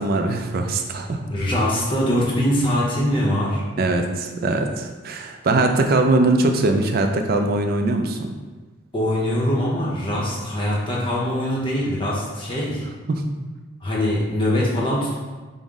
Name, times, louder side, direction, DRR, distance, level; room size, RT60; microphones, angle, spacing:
voice 1, 0.0-1.2 3.8-8.3 13.1-13.3, right 2 dB, 45° right, 5 dB, 0.3 m, -21 dB
voice 2, 1.3-3.6 8.9-12.8 13.8-15.1, equal, 25° left, -4 dB, 0.7 m, -22 dB
5.4 x 2.1 x 3.5 m, 1.3 s
head